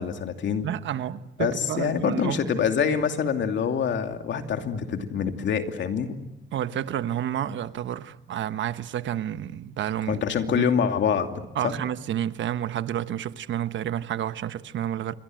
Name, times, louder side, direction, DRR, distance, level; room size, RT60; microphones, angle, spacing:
voice 1, 0.0-0.7 1.4-6.2 10.1-11.8, left 7 dB, 65° left, 2.7 m, -26 dB
voice 2, 0.6-2.4 6.5-10.2 10.5-10.6 11.5-15.1, right 10 dB, 70° right, 1.1 m, -30 dB
27.5 x 23.5 x 7.8 m
cardioid pair, 90°, 20 cm